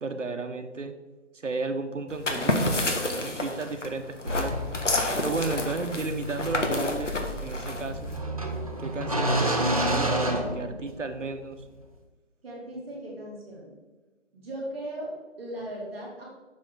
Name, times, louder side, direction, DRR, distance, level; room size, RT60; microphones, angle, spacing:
voice 1, 0.0-0.9 1.3-4.6 5.2-8.1 8.8-11.6, right 3 dB, 90° right, 7 dB, 0.9 m, -33 dB
sound 1, 2.1-8.2, left 2 dB, 80° left, 1.4 m, -30 dB
sound 2, 4.3-11.2, right 1 dB, 30° right, 0.6 m, -30 dB
voice 2, 12.4-13.7 14.3-16.2, right 1 dB, 5° right, -15 dB, 1.2 m, -38 dB
6.6 x 6.2 x 3.7 m, 1.2 s
figure-of-eight pair, 165°, 36 cm